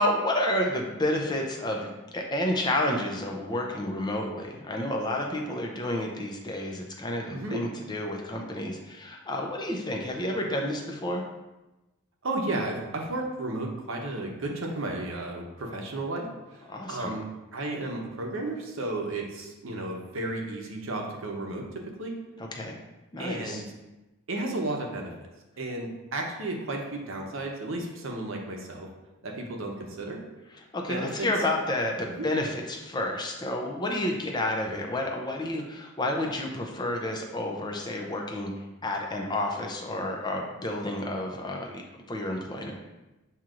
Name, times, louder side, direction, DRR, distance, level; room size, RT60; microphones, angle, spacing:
voice 1, 0.0-1.9 2.1-11.2 16.7-17.1 22.4-22.8 23.1-23.6 30.6-38.5 38.8-42.8, left 1 dB, 20° left, 1 dB, 0.5 m, -30 dB
voice 2, 7.3-7.6 12.2-16.3 16.5-16.6 16.9-21.6 22.0-22.1 23.2-23.7 24.3-25.1 25.6-28.9 29.2-30.2 30.9-31.3 32.1-32.3, right 2 dB, 65° right, 1 dB, 0.8 m, -33 dB
7.3 x 2.9 x 2.5 m, 1.0 s
head